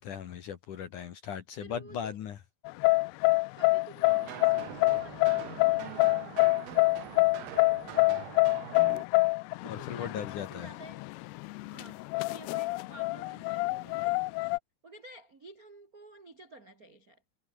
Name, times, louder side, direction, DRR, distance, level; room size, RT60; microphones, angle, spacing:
voice 1, 0.0-2.4 9.7-10.7, left 8 dB, 60° left, 2.3 m, -38 dB
voice 2, 1.6-2.2 3.5-6.2 6.5-6.7 9.6-11.1 11.7-14.4 14.8-17.2, right 2 dB, 45° right, 1.1 m, -51 dB
sound 1, 2.7-14.6, left 23 dB, 90° left, 2.3 m, -26 dB
sound 2, 4.0-9.0, right 19 dB, 80° right, 2.2 m, -43 dB
omnidirectional pair, 5.2 m